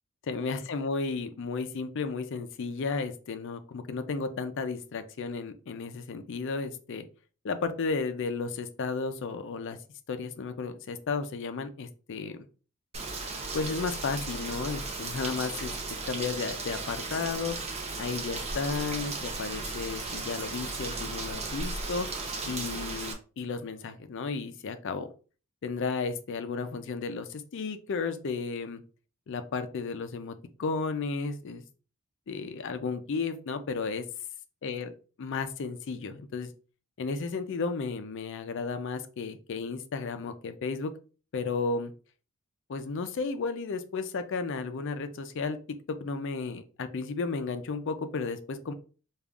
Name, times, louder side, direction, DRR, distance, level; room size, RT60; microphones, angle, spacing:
voice 1, 0.3-7.0 7.4-9.8 10.1-12.4 13.5-15.7 16.1-17.6 18.0-22.1 22.5-25.1 25.6-28.8 29.3-31.6 32.3-34.0 34.6-34.9 35.2-36.5 37.0-40.9 41.3-41.9 42.7-45.6 46.0-48.7, left 4 dB, 55° left, 9 dB, 0.4 m, -33 dB
Rain, 12.9-23.1, right 3 dB, 30° right, 0.6 m, -36 dB
5.1 x 2.4 x 2.3 m, 0.36 s
head